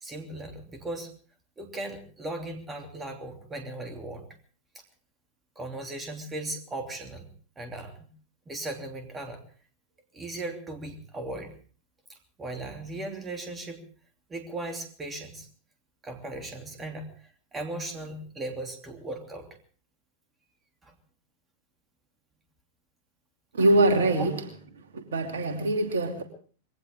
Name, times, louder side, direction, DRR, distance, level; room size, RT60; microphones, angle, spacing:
voice 1, 0.0-1.1 1.6-4.3 5.6-7.3 7.6-8.1 8.5-9.4 10.1-11.5 12.1-13.8 14.3-15.5 16.0-17.1 17.5-19.5 20.8-20.9 24.2-24.3, right 2 dB, 15° right, 4 dB, 2.9 m, -37 dB
voice 2, 23.5-24.4 24.9-26.2, right 2 dB, 65° right, 4 dB, 2.8 m, -23 dB
21.0 x 17.5 x 3.6 m, 0.43 s
figure-of-eight pair, 90°, 0 cm